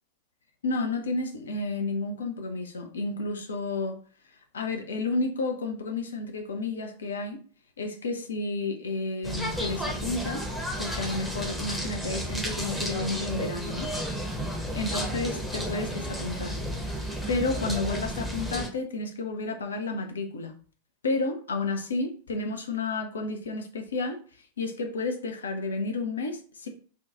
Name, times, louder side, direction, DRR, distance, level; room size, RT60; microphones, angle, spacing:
voice 1, 0.6-4.0 4.5-7.4 7.8-10.5 10.8-13.9 14.7-16.6 16.9-20.5 21.0-24.2 24.6-26.7, left 3 dB, 70° left, 0.5 m, -31 dB
sound 1, 9.2-18.7, equal, ahead, 0.7 m, -32 dB
2.6 x 2.2 x 3.7 m
figure-of-eight pair, 90°, 0 cm